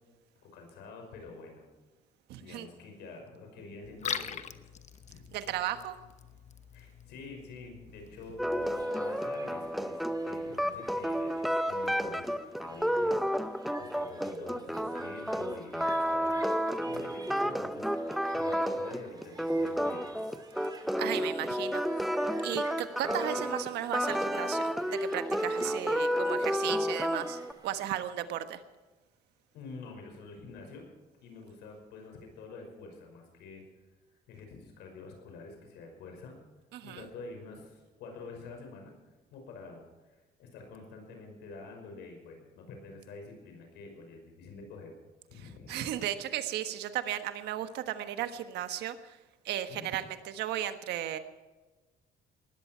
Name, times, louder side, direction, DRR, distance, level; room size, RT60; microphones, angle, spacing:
voice 1, 0.4-1.7 2.4-4.4 5.1-5.2 6.7-12.3 12.5-17.9 18.3-20.0 29.5-30.9 31.2-33.6 34.3-36.4 36.8-38.9 39.3-44.9 45.3-45.9 49.7-49.9, left 3 dB, 85° left, 3 dB, 5.7 m, -47 dB
voice 2, 2.3-2.7 5.3-6.0 21.0-22.0 22.4-28.6 36.7-37.0 45.7-49.2 49.4-51.2, right 11 dB, 80° right, 9 dB, 1.4 m, -35 dB
Liquid, 3.8-8.8, left 8 dB, 45° left, 1.0 m, -42 dB
sound 1, 8.4-27.5, equal, ahead, 0.7 m, -31 dB
sound 2, 8.5-28.0, right 3 dB, 25° right, 3.0 m, -51 dB
19.0 x 13.5 x 4.6 m, 1.2 s
cardioid pair, 110°, 17 cm